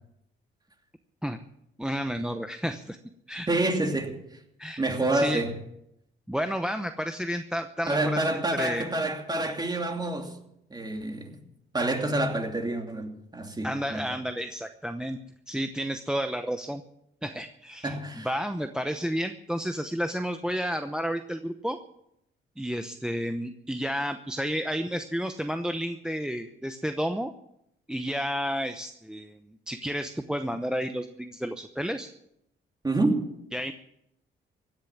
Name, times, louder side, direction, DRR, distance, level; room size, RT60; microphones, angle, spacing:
voice 1, 1.8-3.0 3.3-3.5 4.6-4.8 5.1-5.4 6.3-8.8 13.6-15.2 15.5-16.8 17.2-18.0 18.2-21.8 22.6-27.3 27.9-29.3 29.7-32.1 33.5-33.7, equal, 5° right, 0.9 m, -31 dB
voice 2, 3.5-4.2 4.8-5.5 7.9-10.4 10.7-11.4 11.7-14.1 17.8-18.3 32.8-33.3, right 2 dB, 20° right, 2.8 m, -28 dB
16.0 x 10.5 x 7.4 m
cardioid pair, 90°, 20 cm